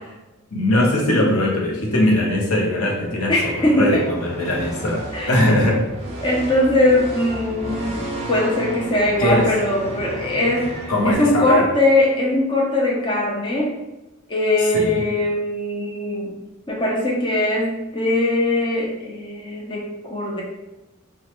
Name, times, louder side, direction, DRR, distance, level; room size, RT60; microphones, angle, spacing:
voice 1, 0.5-5.9 9.2-9.5 10.9-11.7 14.7-15.0, left 1 dB, 90° left, -2 dB, 0.7 m, -20 dB
sound 1, 3.0-11.6, right 1 dB, 30° right, 0.5 m, -33 dB
voice 2, 3.3-4.0 5.1-5.3 6.2-13.8 14.3-16.4 16.7-20.4, left 1 dB, 25° left, -3 dB, 0.5 m, -21 dB
3.0 x 2.2 x 2.9 m, 1.0 s
head